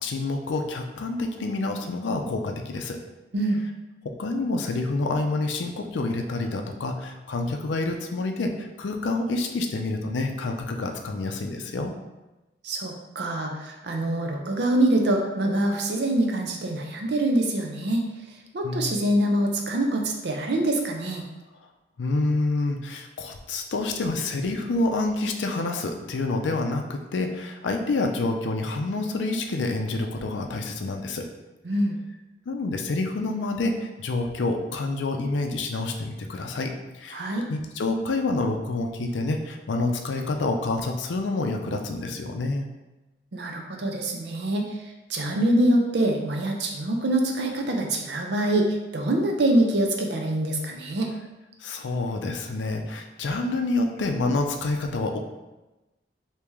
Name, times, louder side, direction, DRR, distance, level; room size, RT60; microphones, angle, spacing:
voice 1, 0.0-3.0 4.0-11.9 18.6-18.9 22.0-31.3 32.5-36.7 37.0-42.7 51.6-55.2, left 2 dB, 90° left, 4 dB, 0.4 m, -28 dB
voice 2, 12.6-18.0 18.5-21.2 31.6-32.0 37.1-37.4 43.3-44.8 45.1-51.1, right 1 dB, 65° right, 2 dB, 0.6 m, -24 dB
3.5 x 2.8 x 3.0 m, 1.1 s
head